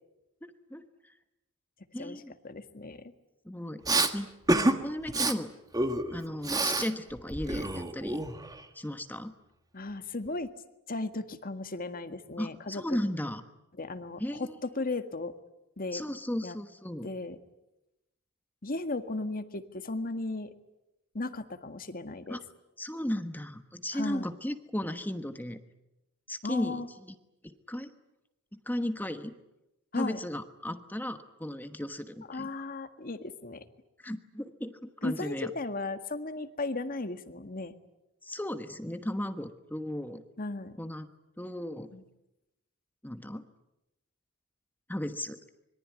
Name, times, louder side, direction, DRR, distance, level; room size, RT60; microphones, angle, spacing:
voice 1, 0.4-1.1 1.9-2.3 3.4-3.8 4.1-4.3 4.7-5.5 6.1-8.2 8.7-9.3 12.4-13.4 14.2-14.6 15.9-17.1 22.3-22.4 22.8-25.6 26.3-27.1 27.4-27.9 28.5-29.4 30.0-32.6 34.0-35.5 38.2-40.2 40.8-41.9 43.0-43.4 44.9-45.4, left 1 dB, 10° left, 9 dB, 1.2 m, -36 dB
voice 2, 2.4-3.1 4.5-4.8 9.7-10.5 10.9-13.0 13.8-15.3 15.8-16.0 16.4-16.6 17.0-17.4 18.6-20.5 21.1-22.4 23.9-24.3 26.4-26.9 29.9-30.2 32.3-33.6 35.0-37.7 40.4-40.8 41.9-42.0, left 2 dB, 45° left, 9 dB, 1.8 m, -36 dB
Respiratory sounds, 3.9-4.1 4.5-4.8 5.1-5.3 5.7-6.9 7.2-8.6, right 2 dB, 20° right, 1.6 m, -28 dB
26.0 x 22.5 x 9.5 m, 0.91 s
head